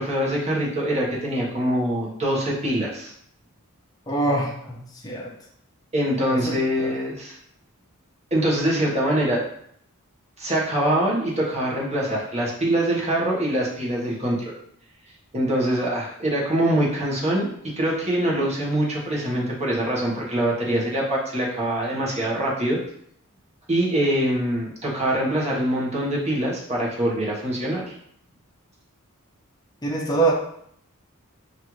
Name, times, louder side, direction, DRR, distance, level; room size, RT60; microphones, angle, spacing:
voice 1, 0.0-3.1 5.9-7.4 8.3-9.4 10.4-14.4 15.3-17.5 17.8-22.8 23.7-27.8, right 1 dB, 30° right, -4 dB, 1.2 m, -24 dB
voice 2, 4.1-5.3 6.3-6.9 29.8-30.3, right 2 dB, 20° left, -3 dB, 0.6 m, -25 dB
5.3 x 2.6 x 3.1 m, 0.69 s
head